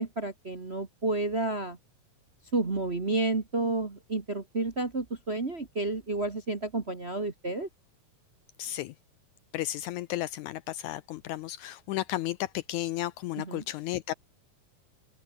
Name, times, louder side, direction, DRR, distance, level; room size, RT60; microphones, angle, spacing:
voice 1, 0.0-1.8 2.5-7.7 13.4-13.6, right 2 dB, 30° right, 1.3 m, -30 dB
voice 2, 8.6-8.9 9.5-14.1, left 15 dB, 80° left, 1.8 m, -33 dB
open air
omnidirectional pair, 3.8 m